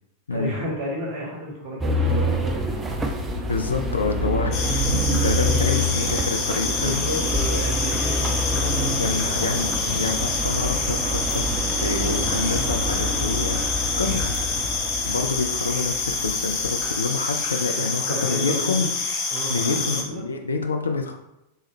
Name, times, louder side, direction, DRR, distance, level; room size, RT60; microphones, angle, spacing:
voice 1, 0.3-3.0 3.3-3.5 6.8-9.6 17.7-18.9 19.3-20.2, equal, 45° right, -4 dB, 1.4 m, -32 dB
sound 1, 1.8-17.0, equal, 15° right, 0.5 m, -27 dB
voice 2, 3.5-7.1 9.0-13.6 14.0-14.3 15.0-18.9 19.5-21.2, left 3 dB, 75° left, 5 dB, 0.4 m, -27 dB
sound 2, 4.5-20.0, left 4 dB, 40° left, 0.7 m, -27 dB
3.4 x 3.2 x 3.1 m, 0.90 s
figure-of-eight pair, 90°, 0 cm